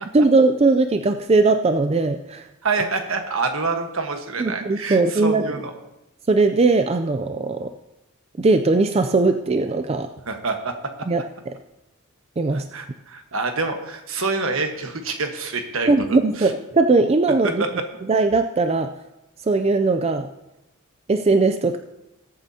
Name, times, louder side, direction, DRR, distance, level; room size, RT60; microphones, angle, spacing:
voice 1, 0.1-2.4 4.4-5.4 6.3-7.7 8.4-10.1 11.1-11.2 12.4-12.6 15.9-17.6 18.1-18.9 19.4-20.3 21.1-21.8, right 3 dB, 30° right, 7 dB, 0.4 m, -19 dB
voice 2, 2.6-5.7 10.3-10.7 12.5-16.5 17.4-17.8, right 3 dB, 70° right, 5 dB, 1.3 m, -27 dB
20.5 x 8.7 x 2.8 m, 0.93 s
head